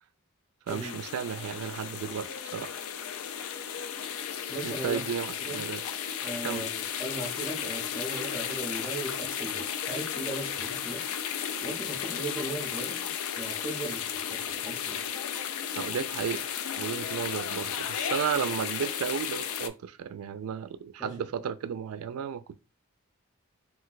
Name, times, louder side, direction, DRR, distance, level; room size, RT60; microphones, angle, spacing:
sound 1, 0.7-19.7, left 8 dB, 75° left, 0.3 m, -34 dB
voice 1, 0.7-2.3 2.5-2.7 4.6-5.8 6.4-6.6 15.7-16.5 16.8-22.6, right 7 dB, 75° right, 0.3 m, -33 dB
voice 2, 4.5-5.0 5.4-5.6 6.2-11.0 11.6-12.9 13.4-15.0 21.0-21.1, right 2 dB, 5° right, 0.6 m, -38 dB
2.5 x 2.1 x 3.8 m
head